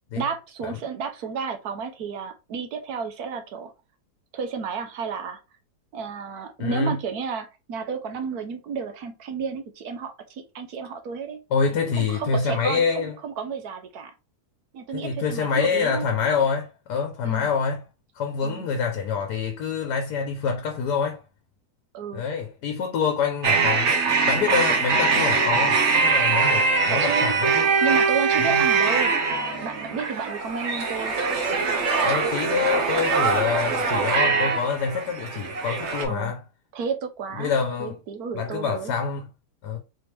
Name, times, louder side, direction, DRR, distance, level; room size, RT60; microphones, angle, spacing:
voice 1, 0.1-3.7 4.3-5.4 5.9-11.4 12.0-14.1 14.7-16.1 17.2-17.5 18.4-18.7 21.9-22.2 26.9-27.3 27.8-29.1 29.5-31.2 36.1-36.3 36.7-37.5 37.8-38.9, right 6 dB, 70° right, 1.3 m, -32 dB
voice 2, 6.6-7.0 11.5-13.1 14.9-17.8 18.1-21.2 22.1-23.9 24.3-27.7 28.4-28.6 32.0-36.4 37.4-38.0 38.3-39.3 39.6-39.8, left 6 dB, 80° left, 1.3 m, -26 dB
sound 1, 23.4-36.1, right 4 dB, 50° right, 1.1 m, -22 dB
4.2 x 3.3 x 3.2 m
omnidirectional pair, 1.7 m